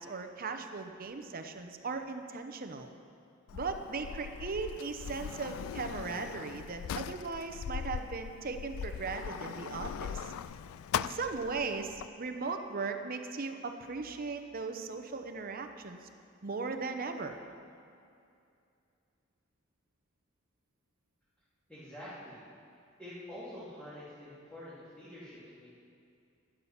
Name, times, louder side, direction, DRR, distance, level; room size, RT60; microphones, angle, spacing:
voice 1, 0.0-2.9 3.5-10.3 10.9-16.0 16.4-17.4, right 4 dB, 45° right, 6 dB, 0.7 m, -38 dB
Sliding door, 3.5-12.1, left 8 dB, 90° left, 0.3 m, -40 dB
voice 2, 21.7-22.5 23.0-25.7, left 1 dB, 5° left, -13 dB, 2.7 m, -47 dB
11.5 x 10.0 x 5.8 m, 2.5 s
head